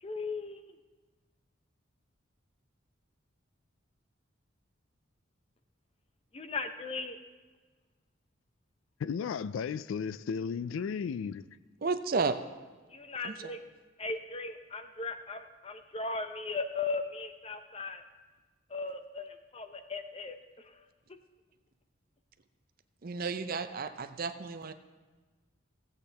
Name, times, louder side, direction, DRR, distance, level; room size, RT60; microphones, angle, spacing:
voice 1, 0.0-0.8 6.3-7.2 12.9-13.6 14.0-18.0 18.7-20.4 20.6-20.8, left 3 dB, 30° left, 7 dB, 0.6 m, -37 dB
voice 2, 9.0-11.5, left 6 dB, 75° left, 16 dB, 0.3 m, -34 dB
voice 3, 11.8-12.4 13.2-13.5 23.0-24.7, right 4 dB, 45° right, 10 dB, 0.5 m, -32 dB
16.0 x 8.2 x 3.4 m, 1.3 s
head